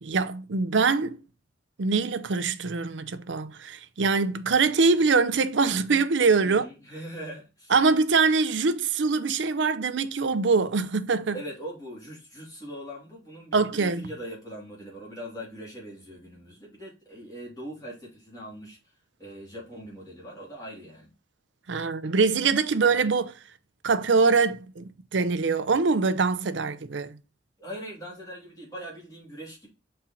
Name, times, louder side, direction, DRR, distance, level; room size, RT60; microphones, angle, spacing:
voice 1, 0.0-1.2 1.8-6.6 7.7-11.3 13.5-14.1 21.7-23.3 23.8-27.2, right 4 dB, 80° right, 0.6 m, -23 dB
voice 2, 6.4-7.7 11.3-18.8 19.2-21.1 22.8-23.0 27.6-29.7, equal, 20° left, 3.0 m, -41 dB
5.7 x 4.3 x 3.8 m
head